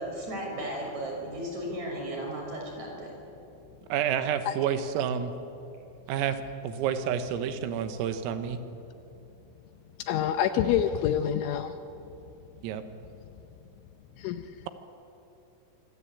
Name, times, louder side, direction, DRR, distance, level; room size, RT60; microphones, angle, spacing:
voice 1, 0.0-3.1 9.1-9.2, right 1 dB, 35° right, 0 dB, 7.4 m, -35 dB
voice 2, 3.9-5.3 6.1-6.4 6.6-8.6 12.6-12.8, right 8 dB, 90° right, 9 dB, 3.9 m, -29 dB
voice 3, 10.1-11.7 14.2-14.4, left 9 dB, 80° left, 9 dB, 3.0 m, -26 dB
25.5 x 25.0 x 8.5 m, 2.9 s
omnidirectional pair, 6.0 m